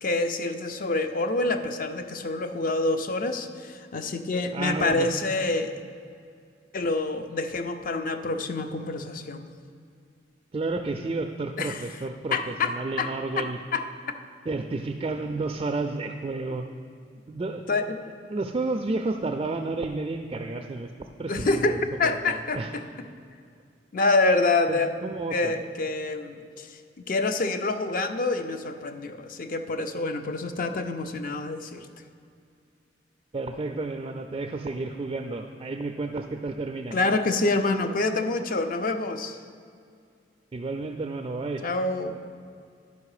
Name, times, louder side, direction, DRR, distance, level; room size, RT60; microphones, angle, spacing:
voice 1, 0.0-5.8 6.7-9.4 11.6-11.8 12.3-13.8 17.7-18.0 21.3-22.8 23.9-24.9 25.3-26.7 27.0-31.9 36.9-39.4 41.6-42.1, left 3 dB, 50° left, 8 dB, 0.5 m, -27 dB
voice 2, 4.5-5.1 10.5-13.6 14.5-16.7 17.3-17.6 18.3-22.7 24.7-25.6 33.3-37.0 40.5-41.6, right 3 dB, 30° right, 5 dB, 0.3 m, -31 dB
11.5 x 5.3 x 4.9 m, 2.3 s
head